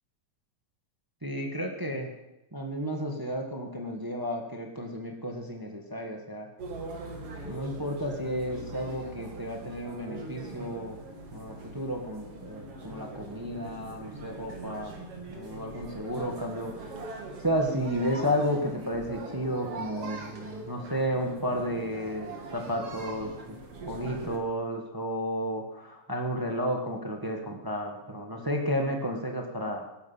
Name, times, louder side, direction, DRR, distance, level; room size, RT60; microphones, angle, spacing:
voice 1, 1.2-2.1 2.5-6.5 7.4-11.0 11.3-15.0 15.3-17.0 17.4-23.6 23.9-29.9, equal, 30° right, 2 dB, 0.4 m, -32 dB
sound 1, 6.6-24.4, right 2 dB, 55° right, 2.9 m, -42 dB
17.5 x 11.0 x 5.6 m, 0.95 s
omnidirectional pair, 3.3 m